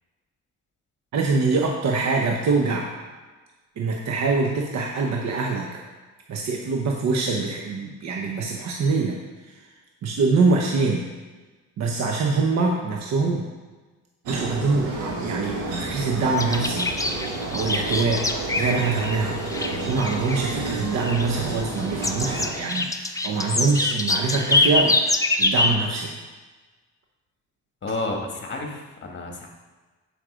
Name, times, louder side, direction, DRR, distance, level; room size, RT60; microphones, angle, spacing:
voice 1, 1.1-2.9 3.8-5.7 6.3-9.2 9.4-9.7 10.0-11.0 11.8-13.5 14.3-18.2 18.5-26.1, right 4 dB, 60° right, 0 dB, 1.0 m, -24 dB
sound 1, 14.3-22.5, right 2 dB, 85° right, 1.6 m, -31 dB
sound 2, 16.4-19.2 19.5-20.7 21.0-21.8 22.0-25.7, left 2 dB, 10° left, 0.6 m, -24 dB
voice 2, 27.8-29.5, left 2 dB, 35° left, 1 dB, 1.7 m, -31 dB
7.7 x 5.3 x 5.0 m, 1.3 s
cardioid pair, 90°, 30 cm